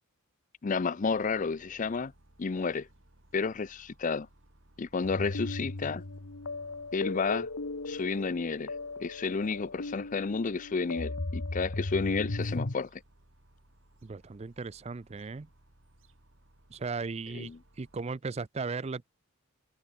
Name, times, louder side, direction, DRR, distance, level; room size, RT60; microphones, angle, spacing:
voice 1, 0.6-2.1 2.4-2.9 3.3-4.3 4.8-6.0 6.9-7.5 7.9-8.7 9.0-13.0 17.3-17.6, left 4 dB, 35° left, 0.5 m, -31 dB
sound 1, 1.0-18.0, right 1 dB, 60° right, 4.8 m, -62 dB
sound 2, 5.0-12.7, left 2 dB, 70° left, 1.3 m, -36 dB
voice 2, 14.0-15.5 16.7-17.5 17.8-19.1, right 4 dB, 30° right, 0.4 m, -36 dB
head